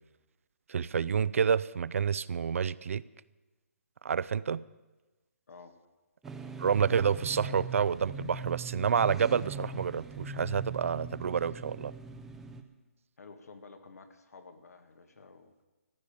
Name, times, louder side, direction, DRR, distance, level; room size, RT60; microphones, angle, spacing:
voice 1, 0.7-3.0 4.0-4.6 6.6-11.9, right 7 dB, 60° right, 19 dB, 0.4 m, -29 dB
voice 2, 5.5-5.8 13.2-15.5, left 4 dB, 80° left, 7 dB, 1.9 m, -52 dB
sound 1, 6.2-12.6, right 3 dB, 5° right, 0.5 m, -41 dB
15.0 x 7.0 x 10.0 m, 1.2 s
hypercardioid pair, 165°, 8 cm